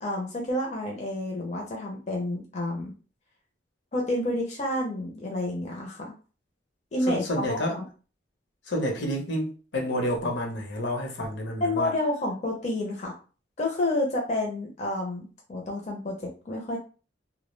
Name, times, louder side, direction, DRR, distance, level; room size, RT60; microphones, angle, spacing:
voice 1, 0.0-2.9 3.9-6.1 6.9-7.8 11.6-13.1 13.6-16.8, left 1 dB, 40° left, 0.5 m, -29 dB
voice 2, 7.0-7.8 8.7-11.9, equal, 75° left, 0.7 m, -29 dB
2.2 x 2.0 x 3.1 m
head